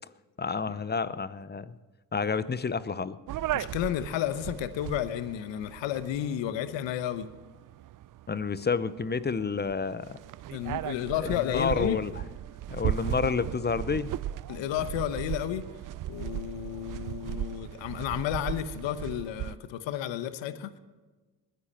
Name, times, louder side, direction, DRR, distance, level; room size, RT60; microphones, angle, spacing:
voice 1, 0.4-1.7 2.1-3.2 8.3-10.2 11.2-12.1 12.7-14.1, left 5 dB, 20° left, 16 dB, 0.7 m, -29 dB
sound 1, 3.3-19.6, right 12 dB, 45° right, 0.5 m, -37 dB
voice 2, 3.5-7.3 10.5-12.0 14.5-15.6 16.1-20.8, left 11 dB, 70° left, 12 dB, 1.1 m, -32 dB
21.0 x 10.5 x 4.4 m, 1.3 s
supercardioid pair, 65°, 47 cm